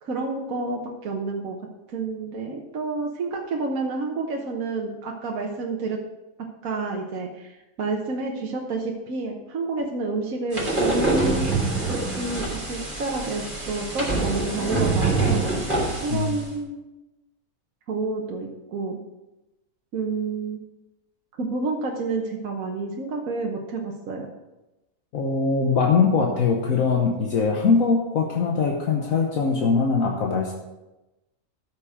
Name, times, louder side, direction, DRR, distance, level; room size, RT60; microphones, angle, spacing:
voice 1, 0.0-1.6 1.9-6.0 6.6-11.5 11.9-15.4 16.0-16.8 17.9-19.0 19.9-20.6 21.4-24.3, right 3 dB, 65° right, 1 dB, 1.4 m, -29 dB
sound 1, 10.5-16.4, right 2 dB, 35° right, 3.5 m, -25 dB
voice 2, 25.1-30.5, left 5 dB, 65° left, 0 dB, 1.5 m, -22 dB
13.0 x 6.6 x 4.9 m, 1.0 s
omnidirectional pair, 1.5 m